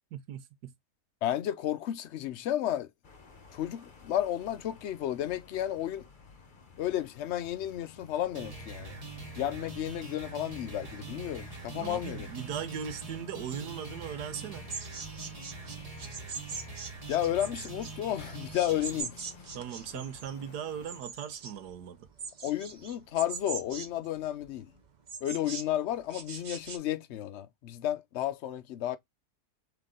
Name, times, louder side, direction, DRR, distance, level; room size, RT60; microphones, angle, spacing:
voice 1, 0.1-0.7 11.8-14.7 19.5-22.1, right 8 dB, 80° right, 1.3 m, -39 dB
voice 2, 1.2-2.9 3.5-6.0 6.8-9.0 9.4-12.3 17.1-19.2 22.4-24.7 25.2-29.0, left 12 dB, 70° left, 0.6 m, -32 dB
sound 1, 3.0-21.0, left 4 dB, 40° left, 0.9 m, -52 dB
sound 2, 8.3-19.0, right 4 dB, 25° right, 1.1 m, -44 dB
sound 3, 14.7-26.8, right 5 dB, 40° right, 0.6 m, -42 dB
3.9 x 3.4 x 3.6 m
omnidirectional pair, 1.7 m